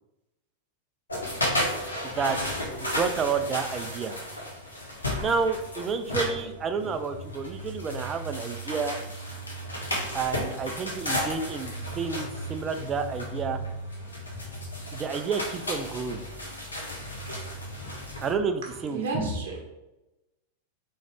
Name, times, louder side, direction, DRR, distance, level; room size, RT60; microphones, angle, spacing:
sound 1, 1.1-18.3, equal, 80° left, 0.8 m, -34 dB
voice 1, 2.0-2.4 2.8-4.2 5.2-9.0 10.1-13.6 14.9-16.2 18.2-19.0, right 5 dB, 25° right, 8 dB, 0.4 m, -30 dB
voice 2, 18.6-19.6, right 2 dB, 60° right, 0 dB, 0.8 m, -31 dB
3.7 x 3.1 x 3.4 m, 0.95 s
figure-of-eight pair, 90°, 0 cm